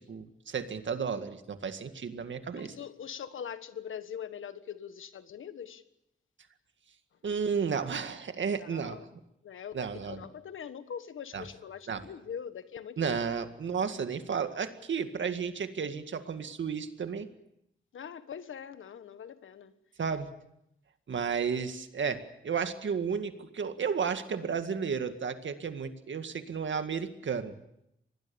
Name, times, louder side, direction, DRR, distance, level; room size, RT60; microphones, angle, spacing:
voice 1, 0.0-2.7 7.2-9.0 9.7-10.2 11.3-11.4 11.9-12.0 13.0-17.3 20.0-20.3 21.1-27.6, right 6 dB, 70° right, 2.0 m, -33 dB
voice 2, 2.5-5.8 8.6-9.2 9.4-13.3 17.9-19.8, left 8 dB, 80° left, 1.4 m, -42 dB
25.5 x 20.0 x 7.1 m
cardioid pair, 70°, 20 cm